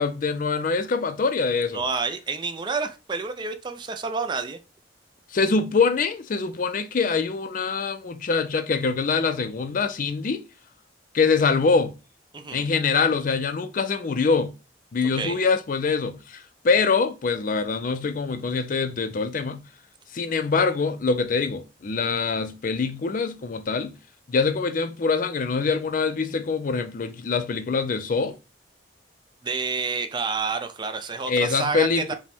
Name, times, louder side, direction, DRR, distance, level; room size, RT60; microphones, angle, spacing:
voice 1, 0.0-1.8 5.3-10.4 11.1-12.0 12.5-14.5 14.9-19.7 20.1-24.0 24.3-28.4 31.3-32.1, left 4 dB, 45° left, 0.4 m, -24 dB
voice 2, 1.7-4.6 12.3-12.7 15.2-15.4 29.4-32.1, right 4 dB, 25° right, 0.4 m, -29 dB
4.9 x 2.2 x 3.4 m
head